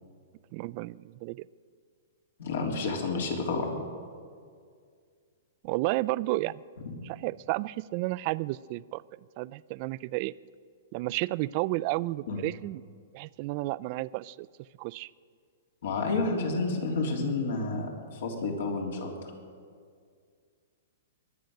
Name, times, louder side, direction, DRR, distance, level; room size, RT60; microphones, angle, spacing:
voice 1, 0.5-1.5 5.6-6.6 7.0-9.0 9.4-10.3 10.9-12.8 13.1-14.5 14.8-15.1, right 19 dB, 35° right, 19 dB, 0.3 m, -32 dB
voice 2, 2.4-3.8 6.8-6.9 12.3-12.4 15.8-19.3, left 3 dB, 70° left, 1 dB, 3.3 m, -30 dB
22.0 x 9.2 x 6.6 m, 2.1 s
hypercardioid pair, 160°, 0 cm